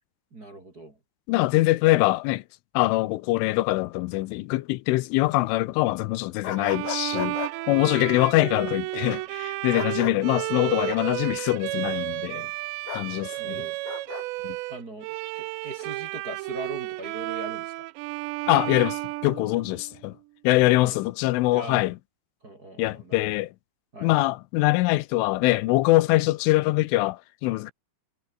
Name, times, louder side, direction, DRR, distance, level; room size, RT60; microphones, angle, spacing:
voice 1, 0.3-1.0 7.9-8.3 9.7-9.9 13.4-13.7 14.7-17.9 20.8-21.0 21.5-21.9 22.4-23.3 23.9-24.1, right 1 dB, 25° right, 2.5 m, -41 dB
voice 2, 1.3-2.4 2.7-7.4 7.7-12.5 12.9-13.6 14.4-14.6 18.5-20.2 20.4-22.0 22.8-23.5 24.0-27.7, left 19 dB, 85° left, 3.4 m, -23 dB
sound 1, 6.4-7.5 9.7-10.2 12.9-13.1 13.8-14.2, left 8 dB, 60° left, 1.6 m, -34 dB
Bowed string instrument, 6.6-20.0, right 21 dB, 80° right, 2.6 m, -32 dB
omnidirectional pair, 5.5 m